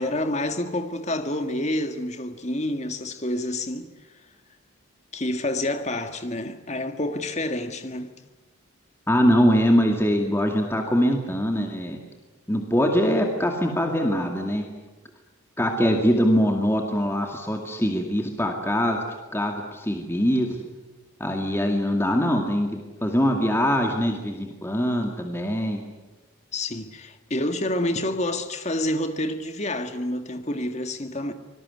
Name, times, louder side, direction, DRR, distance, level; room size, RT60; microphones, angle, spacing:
voice 1, 0.0-3.9 5.1-8.1 26.5-31.3, left 1 dB, 30° left, 1.8 m, -28 dB
voice 2, 9.1-12.0 12.5-14.7 15.6-19.0 19.3-20.6 21.2-25.8, equal, 10° left, 2.1 m, -23 dB
25.5 x 20.0 x 9.7 m
head